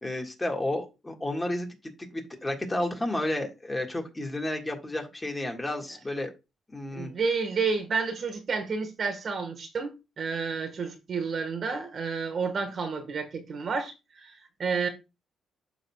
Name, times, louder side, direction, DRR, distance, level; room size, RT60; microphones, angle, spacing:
voice 1, 0.0-6.3 6.7-7.1, left 1 dB, 15° left, 1.8 m, -32 dB
voice 2, 6.9-14.9, right 5 dB, 50° right, 1.4 m, -30 dB
12.0 x 4.0 x 2.3 m
cardioid pair, 90°, 0 cm